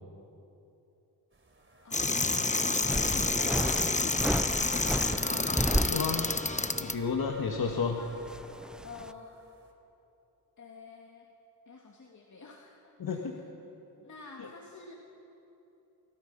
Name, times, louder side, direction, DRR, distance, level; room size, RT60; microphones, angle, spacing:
sound 1, 1.3-9.7, right 1 dB, 30° right, 3.9 m, -47 dB
voice 1, 1.8-4.8 7.9-8.1 8.8-9.4 10.6-11.3 11.7-13.2 14.0-14.9, left 4 dB, 45° left, 0 dB, 3.0 m, -48 dB
sound 2, 1.9-6.9, left 3 dB, 20° left, 1.2 m, -29 dB
sound 3, 2.9-6.5 6.8-6.9 7.5-9.1, equal, ahead, 0.6 m, -33 dB
voice 2, 5.6-6.3 6.8-8.0 13.0-13.4 14.4-14.5, left 5 dB, 60° left, 2 dB, 2.1 m, -32 dB
29.0 x 24.5 x 5.5 m, 2.9 s
cardioid pair, 70°, 40 cm